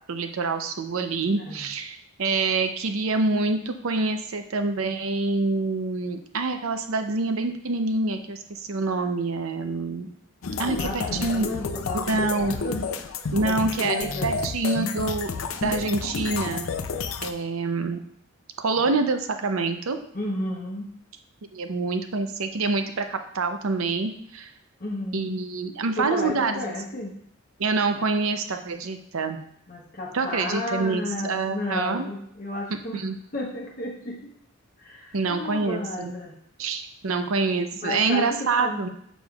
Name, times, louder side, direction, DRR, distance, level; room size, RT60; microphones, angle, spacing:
voice 1, 0.1-10.1 10.6-11.5 11.9-12.6 13.3-15.3 15.6-16.7 17.2-18.0 18.6-20.0 21.5-24.5 25.1-26.7 27.6-29.4 30.1-32.1 32.9-33.2 35.1-36.1 36.6-38.9, right 3 dB, 75° right, 7 dB, 0.6 m, -26 dB
sound 1, 10.4-17.3, left 4 dB, 70° left, 0.5 m, -30 dB
voice 2, 10.6-12.8 13.4-14.5 14.9-15.0 18.8-18.9 20.1-20.9 24.8-25.3 26.0-27.1 29.7-33.0 33.3-34.3 34.8-36.3 37.8-38.8, left 2 dB, 40° left, -2 dB, 0.9 m, -33 dB
6.9 x 6.1 x 2.4 m, 0.68 s
head